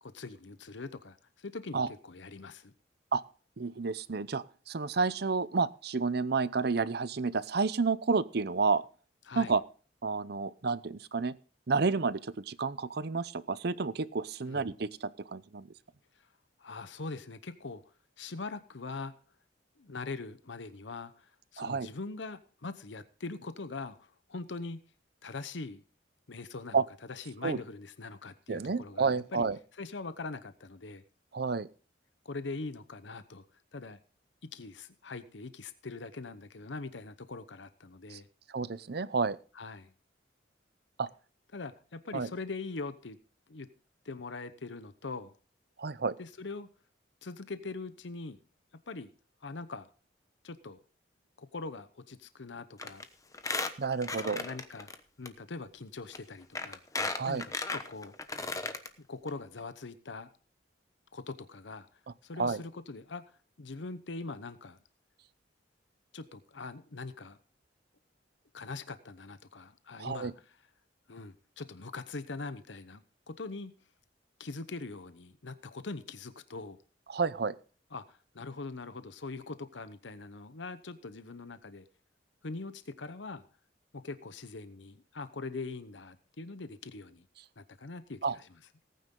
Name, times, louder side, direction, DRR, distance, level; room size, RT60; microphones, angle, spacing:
voice 1, 0.0-2.7 9.2-9.5 14.5-14.7 16.6-17.8 18.2-19.1 19.8-24.8 25.2-25.8 26.3-26.8 27.1-29.5 29.7-31.0 32.2-33.4 33.7-34.0 34.4-38.3 39.5-39.9 41.5-43.2 43.5-43.7 44.0-45.3 46.2-46.7 47.2-48.4 48.9-49.1 49.4-49.9 50.4-50.8 51.4-53.1 54.1-54.9 55.2-56.8 57.3-58.1 59.0-60.3 61.1-63.3 63.6-64.8 66.1-67.4 68.5-70.6 71.1-73.7 74.4-76.8 77.9-81.8 82.4-83.4 83.9-87.3 87.6-88.5, left 3 dB, 75° left, 13 dB, 0.9 m, -42 dB
voice 2, 3.6-8.8 9.4-9.6 10.0-11.3 11.7-15.7 21.6-21.9 26.7-26.8 27.4-27.6 28.5-29.6 31.3-31.7 38.1-38.2 38.5-39.4 41.0-41.1 42.1-42.3 45.8-46.1 53.8-54.5 57.1-57.4 62.4-62.6 70.0-70.3 77.1-77.5 88.2-88.4, right 4 dB, 55° right, 17 dB, 0.7 m, -30 dB
Squeak, 52.8-53.0 53.3-55.0 55.3-55.4 56.1-56.2 56.6-58.9 59.3-59.4 59.6-59.7, left 3 dB, 20° left, 1.0 m, -35 dB
18.5 x 9.4 x 3.8 m, 0.40 s
head